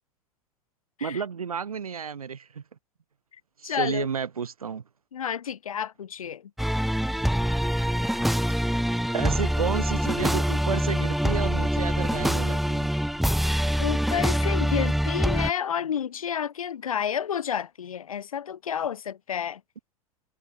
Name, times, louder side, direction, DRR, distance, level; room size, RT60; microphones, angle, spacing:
voice 1, 1.0-2.6 3.6-4.8 9.1-12.9, right 6 dB, 75° right, 2.9 m, -31 dB
voice 2, 3.6-4.1 5.1-6.5 13.8-19.6, left 8 dB, 70° left, 2.7 m, -30 dB
sound 1, 6.6-15.5, equal, ahead, 1.5 m, -25 dB
figure-of-eight pair, 90°, 19 cm